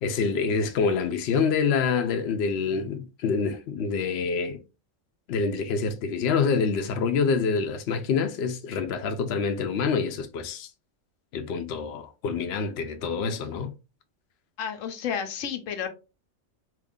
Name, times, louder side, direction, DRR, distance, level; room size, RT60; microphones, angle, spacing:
voice 1, 0.0-4.6 5.3-10.7 11.3-13.7, left 5 dB, 65° left, 0.8 m, -26 dB
voice 2, 14.6-15.9, left 8 dB, 85° left, 1.0 m, -31 dB
2.9 x 2.4 x 3.6 m
omnidirectional pair, 1.3 m